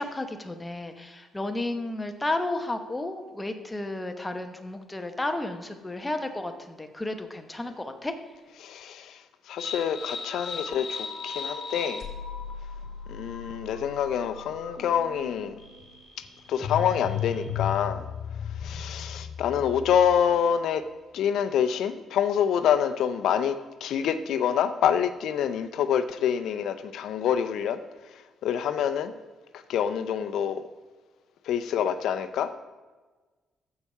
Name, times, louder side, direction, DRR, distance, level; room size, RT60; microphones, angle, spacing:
voice 1, 0.0-8.2, left 2 dB, 15° left, 6 dB, 1.0 m, -32 dB
voice 2, 8.6-12.0 13.1-15.5 16.5-18.0 18.6-20.8 21.1-23.6 23.8-27.8 28.1-29.1 29.5-30.6 31.4-32.6, left 8 dB, 75° left, 10 dB, 0.5 m, -26 dB
sound 1, 9.6-20.2, left 7 dB, 55° left, 1.8 m, -36 dB
14.0 x 4.7 x 5.6 m, 1.3 s
cardioid pair, 105°, 0 cm